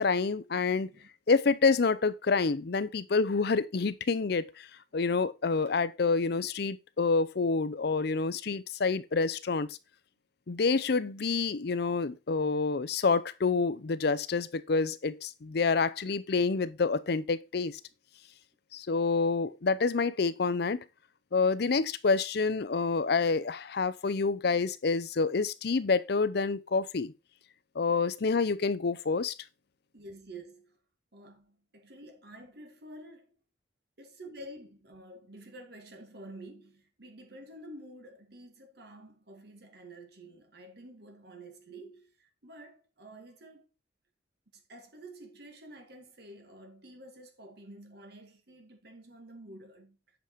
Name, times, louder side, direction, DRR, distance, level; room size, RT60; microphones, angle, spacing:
voice 1, 0.0-0.9 1.3-4.7 4.9-9.8 10.5-17.8 18.7-20.8 21.3-27.1 27.8-29.3, left 4 dB, 60° left, 0.6 m, -28 dB
voice 2, 0.5-1.1 29.9-30.8 31.1-33.4 34.0-43.7 44.5-50.0, right 1 dB, 60° right, 1.9 m, -49 dB
8.1 x 5.0 x 4.5 m
head